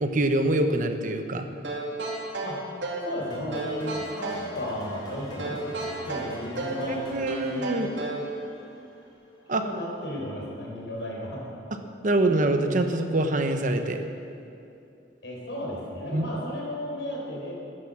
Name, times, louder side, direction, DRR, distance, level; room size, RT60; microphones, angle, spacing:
voice 1, 0.0-1.5 7.1-7.9 9.5-9.6 12.0-14.0 16.1-16.3, right 2 dB, 45° right, 6 dB, 1.0 m, -24 dB
sound 1, 1.6-3.1 3.5-4.5 5.4-6.9 7.3-8.3, right 2 dB, 80° right, 2.5 m, -32 dB
voice 2, 3.0-3.9 4.2-5.6 6.0-7.9 9.5-11.5 15.2-17.5, equal, 80° left, -3 dB, 4.1 m, -34 dB
sound 2, 3.3-9.4, equal, 25° left, 2.8 m, -45 dB
13.0 x 9.7 x 7.4 m, 2.7 s
head